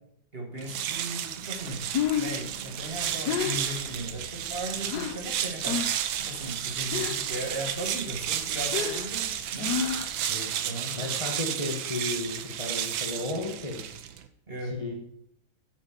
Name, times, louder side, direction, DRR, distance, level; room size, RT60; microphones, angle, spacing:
voice 1, 0.3-1.8 2.2-5.8 6.2-9.7 10.6-11.0 14.5-14.8, right 1 dB, 30° right, 1 dB, 1.9 m, -37 dB
sound 1, 0.6-14.3, right 10 dB, 75° right, 1.5 m, -32 dB
Breathing, 1.7-5.3 5.6-6.1 6.4-7.4 7.7-10.3, left 8 dB, 60° left, 1.3 m, -31 dB
voice 2, 11.0-13.8 14.6-14.9, left 2 dB, 20° left, 1 dB, 1.2 m, -33 dB
9.6 x 6.9 x 7.3 m, 0.74 s
omnidirectional pair, 2.2 m